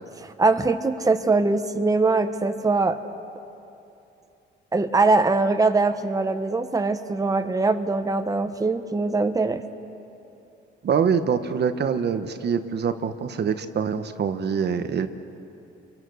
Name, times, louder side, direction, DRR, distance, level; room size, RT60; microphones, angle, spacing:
voice 1, 0.2-3.0 4.7-9.6, right 3 dB, 15° right, 8 dB, 1.2 m, -22 dB
voice 2, 10.8-15.1, right 6 dB, 55° right, 9 dB, 1.4 m, -24 dB
29.5 x 23.0 x 6.5 m, 2.8 s
cardioid pair, 90°, 20 cm